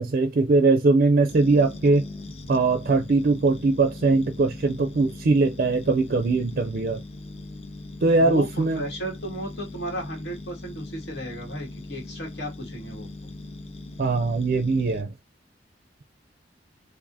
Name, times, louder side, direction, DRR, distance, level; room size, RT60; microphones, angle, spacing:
voice 1, 0.0-2.0 2.5-7.0 8.0-8.8 14.0-15.1, right 3 dB, 50° right, 0.4 m, -21 dB
sound 1, 1.3-15.0, left 2 dB, 35° left, 0.5 m, -40 dB
voice 2, 8.2-13.1, right 1 dB, 65° left, 2.0 m, -34 dB
4.8 x 2.5 x 2.7 m
head